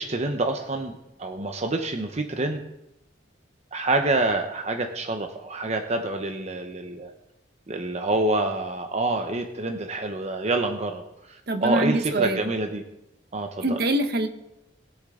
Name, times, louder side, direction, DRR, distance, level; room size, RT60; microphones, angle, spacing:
voice 1, 0.0-2.6 3.7-7.1 7.7-12.8 13.3-13.8, right 2 dB, 35° right, 5 dB, 0.8 m, -27 dB
voice 2, 11.5-12.5 13.6-14.3, right 2 dB, 60° right, 6 dB, 1.1 m, -24 dB
20.5 x 7.7 x 3.7 m, 0.88 s
head